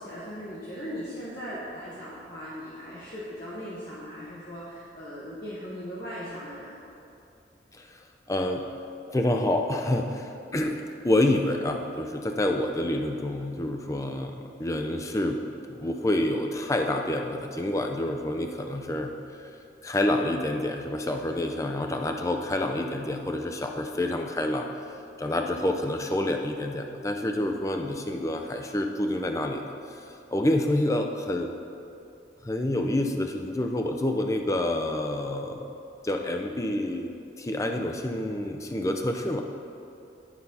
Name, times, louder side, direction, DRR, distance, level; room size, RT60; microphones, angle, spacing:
voice 1, 0.0-6.9, equal, 50° left, -9 dB, 1.3 m, -38 dB
voice 2, 8.3-8.7 9.1-19.1 19.8-24.7 25.2-31.5 32.4-35.7 36.0-37.1 37.4-39.4, left 1 dB, 15° left, 3 dB, 0.5 m, -28 dB
10.5 x 4.0 x 5.5 m, 2.6 s
head